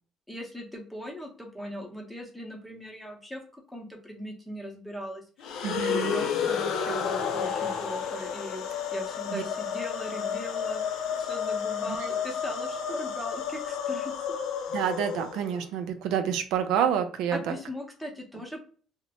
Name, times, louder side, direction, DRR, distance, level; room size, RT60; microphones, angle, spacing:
voice 1, 0.3-5.2 5.6-14.4 17.3-18.6, equal, 5° left, 0 dB, 0.7 m, -39 dB
sound 1, 5.4-15.6, left 7 dB, 75° left, 0.4 m, -31 dB
voice 2, 5.6-6.2 9.3-9.4 11.9-12.0 14.7-17.5, right 8 dB, 85° right, 7 dB, 0.4 m, -28 dB
2.6 x 2.1 x 2.8 m, 0.43 s
cardioid pair, 125°, 0 cm